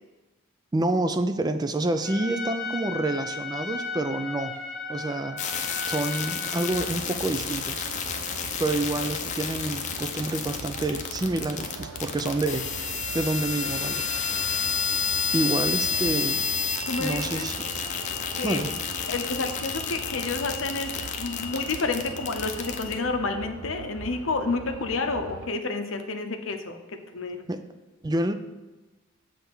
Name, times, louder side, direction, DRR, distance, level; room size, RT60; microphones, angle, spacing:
voice 1, 0.7-4.6 4.9-5.4 5.9-7.8 8.6-12.9 13.1-14.1 15.3-16.4 17.0-17.5 18.4-18.8 27.5-27.6 28.0-28.3, right 2 dB, 20° right, 9 dB, 0.4 m, -28 dB
Trumpet, 2.0-6.9, left 4 dB, 5° left, 0.8 m, -35 dB
sound 1, 5.4-23.0, left 6 dB, 35° left, 0.6 m, -30 dB
sound 2, 6.7-25.5, right 5 dB, 75° right, 0.5 m, -42 dB
voice 2, 16.9-17.5 18.4-18.6 19.1-27.4, left 3 dB, 70° left, 6 dB, 0.7 m, -30 dB
7.6 x 3.4 x 6.1 m, 1.2 s
head